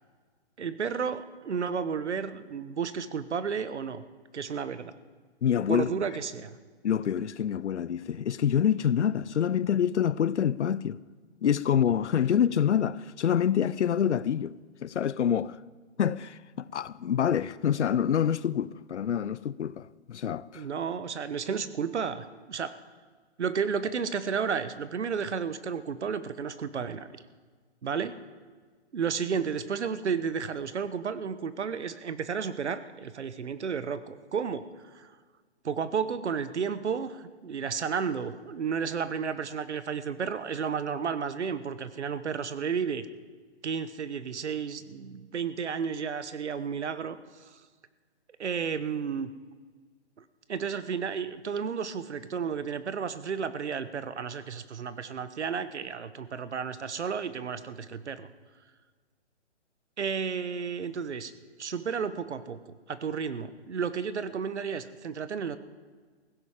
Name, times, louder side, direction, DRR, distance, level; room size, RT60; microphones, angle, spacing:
voice 1, 0.6-4.0 4.3-4.9 5.7-6.5 20.5-22.7 23.4-27.1 27.8-28.1 28.9-34.6 34.9-35.1 35.6-43.1 43.6-47.6 48.4-49.3 50.2-50.3 50.5-58.3 60.0-61.3 61.6-65.6, right 6 dB, 75° right, 1.2 m, -32 dB
voice 2, 5.4-5.9 6.8-11.0 11.4-14.6 14.8-15.6 16.0-20.6, left 9 dB, 80° left, 0.7 m, -26 dB
18.0 x 16.0 x 5.0 m
hypercardioid pair, 175°, 35 cm